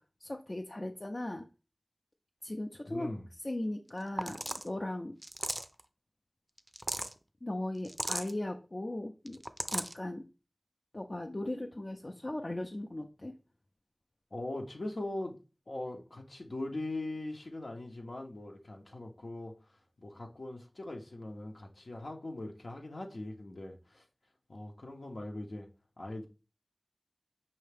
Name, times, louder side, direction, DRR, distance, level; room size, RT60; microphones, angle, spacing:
voice 1, 0.2-1.5 2.4-3.1 3.4-5.1 7.4-9.4 9.7-10.2 10.9-13.4, left 1 dB, 50° left, 0.5 m, -38 dB
voice 2, 2.8-3.3 14.3-15.4 15.7-19.5 20.0-24.0 24.5-25.7 26.0-26.3, left 2 dB, 85° left, 0.8 m, -41 dB
sound 1, 3.9-4.0 4.2-4.7 5.2-5.8 6.6-7.1 7.8-8.3 9.3-9.9, right 1 dB, 30° right, 0.4 m, -36 dB
5.4 x 2.8 x 3.3 m
wide cardioid pair, 50°, 0 cm